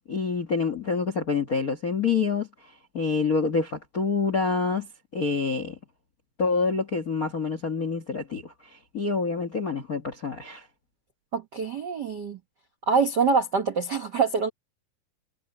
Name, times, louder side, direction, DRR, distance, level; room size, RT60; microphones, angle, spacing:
voice 1, 0.1-5.8 6.4-10.7, left 5 dB, 60° left, 0.9 m, -27 dB
voice 2, 11.3-12.4 12.9-14.5, right 5 dB, 80° right, 0.9 m, -25 dB
omnidirectional pair, 4.2 m